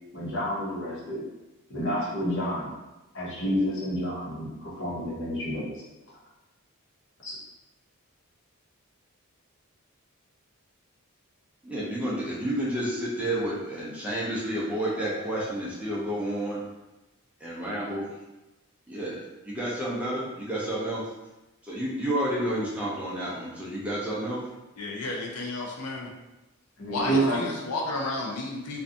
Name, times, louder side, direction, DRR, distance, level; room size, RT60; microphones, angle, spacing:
voice 1, 0.1-1.2 1.7-2.7 3.1-5.6 7.2-7.4 26.8-27.4, right 1 dB, 55° left, -7 dB, 0.9 m, -29 dB
voice 2, 11.6-16.6 17.4-18.1 18.9-21.0 21.6-24.4, right 1 dB, 5° right, -7 dB, 0.4 m, -30 dB
voice 3, 24.8-26.1 26.9-28.8, left 2 dB, 90° left, -1 dB, 0.5 m, -32 dB
2.5 x 2.2 x 2.5 m, 1.0 s
head